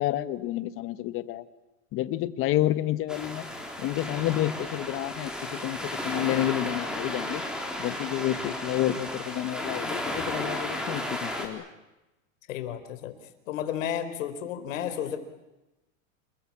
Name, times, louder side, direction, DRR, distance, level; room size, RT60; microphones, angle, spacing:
voice 1, 0.0-1.4 1.9-3.4 3.8-5.8 6.0-7.4 7.8-11.6, left 14 dB, 30° left, 14 dB, 1.4 m, -29 dB
sound 1, 3.1-11.5, left 1 dB, ahead, 4.2 m, -34 dB
voice 2, 12.5-13.2 13.5-15.2, left 10 dB, 70° left, 9 dB, 4.4 m, -32 dB
29.0 x 21.5 x 8.7 m, 1.0 s
supercardioid pair, 155°, 41 cm